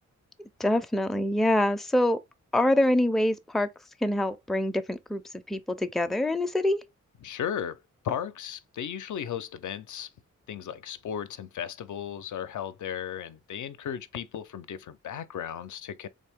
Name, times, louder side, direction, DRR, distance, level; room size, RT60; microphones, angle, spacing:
voice 1, 0.6-2.2 2.5-3.7 4.0-5.2 5.5-6.8, left 1 dB, ahead, 0.4 m, -25 dB
voice 2, 7.2-10.1 10.5-16.1, left 9 dB, 80° left, 0.5 m, -35 dB
3.7 x 2.7 x 3.4 m
cardioid pair, 75°, 30 cm